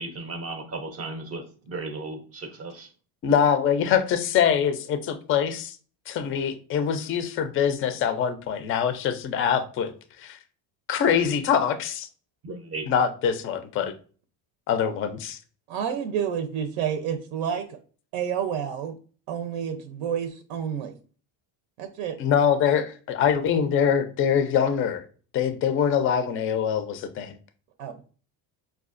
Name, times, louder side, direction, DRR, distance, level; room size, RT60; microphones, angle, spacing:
voice 1, 0.0-2.9 12.4-12.9, right 3 dB, 30° right, 0.5 m, -35 dB
voice 2, 3.2-5.7 6.1-9.9 10.2-10.4 10.9-12.1 12.9-13.9 14.7-15.4 22.2-25.0 25.3-27.4, left 8 dB, 30° left, 0.3 m, -24 dB
voice 3, 15.7-17.8 18.1-18.9 19.3-21.0 21.8-22.2 27.8-28.0, right 8 dB, 85° right, 0.6 m, -29 dB
4.9 x 2.3 x 2.4 m
cardioid pair, 120°, 48 cm